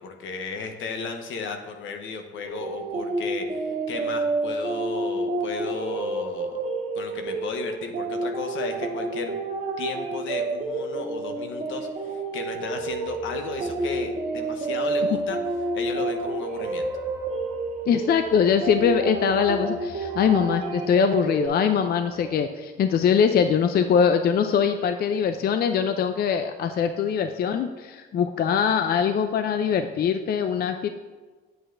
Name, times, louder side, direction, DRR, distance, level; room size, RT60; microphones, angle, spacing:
voice 1, 0.0-6.6 6.9-9.4 9.8-15.4 15.7-16.9, left 5 dB, 75° left, 5 dB, 0.9 m, -34 dB
sound 1, 2.4-21.5, right 2 dB, 45° right, 1.5 m, -29 dB
sound 2, 12.6-22.3, right 2 dB, 10° right, 0.7 m, -47 dB
voice 2, 17.9-30.9, left 7 dB, 50° left, 8 dB, 0.4 m, -22 dB
7.9 x 7.9 x 2.5 m, 1.4 s
cardioid pair, 90°, 20 cm